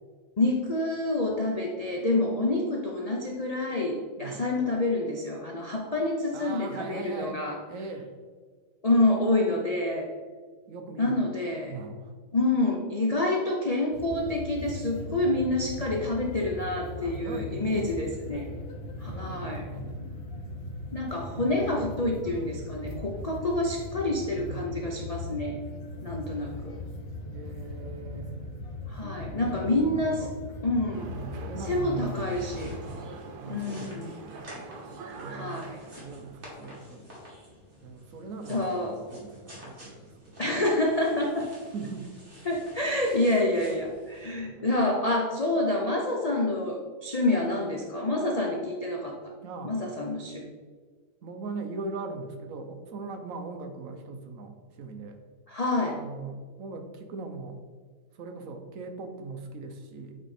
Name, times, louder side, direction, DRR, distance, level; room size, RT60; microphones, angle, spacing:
voice 1, 0.4-7.6 8.8-10.1 11.0-11.7 12.3-18.5 19.0-19.7 20.9-25.6 26.0-26.7 28.9-30.3 30.6-31.1 31.6-32.7 33.5-34.1 35.3-35.8 38.5-39.0 40.4-41.5 42.4-49.3 49.6-50.5 55.5-56.0, left 2 dB, 85° left, -1 dB, 0.3 m, -28 dB
voice 2, 4.2-4.5 6.3-7.4 7.7-8.1 10.7-11.2 11.6-12.1 17.0-17.9 19.0-19.9 21.2-21.7 24.2-24.8 27.3-28.6 28.9-30.3 31.0-32.5 33.4-34.1 35.1-37.1 37.8-40.6 41.7-42.1 44.4-44.7 49.4-49.8 51.2-55.2 55.9-57.6 58.2-60.2, right 3 dB, 65° right, 5 dB, 1.0 m, -40 dB
sound 1, 13.9-32.9, left 2 dB, 45° left, 1.0 m, -39 dB
sound 2, 30.9-36.5, right 4 dB, 90° right, 1.3 m, -44 dB
sound 3, 31.9-44.3, left 1 dB, 35° right, 2.1 m, -49 dB
8.5 x 3.6 x 4.2 m, 1.6 s
omnidirectional pair, 1.7 m